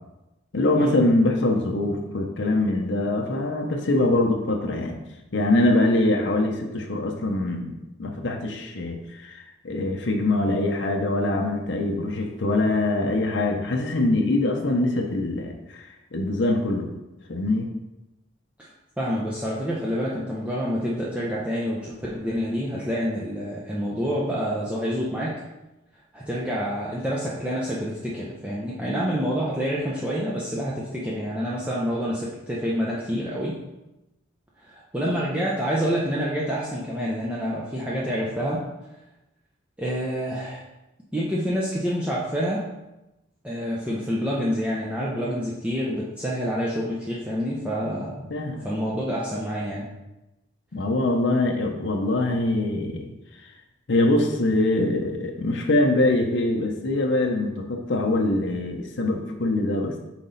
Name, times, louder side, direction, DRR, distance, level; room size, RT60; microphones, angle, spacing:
voice 1, 0.5-5.0 5.3-16.9 17.3-17.7 48.3-48.7 50.7-53.1 53.4-53.5 53.9-60.0, left 2 dB, 60° left, 2 dB, 0.7 m, -23 dB
voice 2, 18.6-25.4 26.1-33.6 34.6-38.6 39.8-40.6 41.1-42.6 43.4-48.3 48.6-49.9, equal, 5° right, -6 dB, 0.6 m, -27 dB
5.9 x 4.0 x 3.9 m, 0.97 s
head